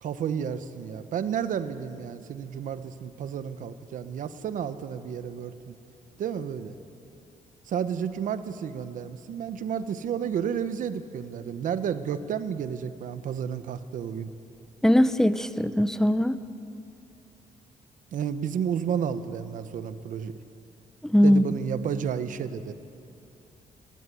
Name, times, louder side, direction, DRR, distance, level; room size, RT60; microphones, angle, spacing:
voice 1, 0.0-5.8 6.2-6.8 7.7-14.3 18.1-20.4 21.2-22.7, right 8 dB, 70° right, 12 dB, 1.1 m, -31 dB
voice 2, 14.8-16.4 21.0-21.4, equal, 5° left, 13 dB, 0.7 m, -20 dB
18.5 x 18.5 x 9.5 m, 2.7 s
cardioid pair, 110°, 14 cm